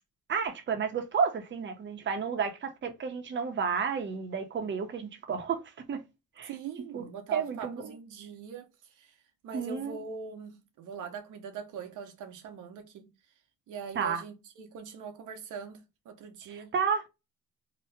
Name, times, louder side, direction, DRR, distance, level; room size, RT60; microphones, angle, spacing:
voice 1, 0.3-5.6 5.9-6.0 6.4-6.5 6.9-7.0 7.3-7.9 9.5-10.0 13.9-14.2 16.5-17.1, right 6 dB, 40° right, 0.7 m, -31 dB
voice 2, 6.4-8.7 9.0-9.1 9.4-13.1 13.7-16.7, right 6 dB, 80° right, 0.8 m, -42 dB
2.8 x 2.1 x 3.2 m
cardioid pair, 90°, 30 cm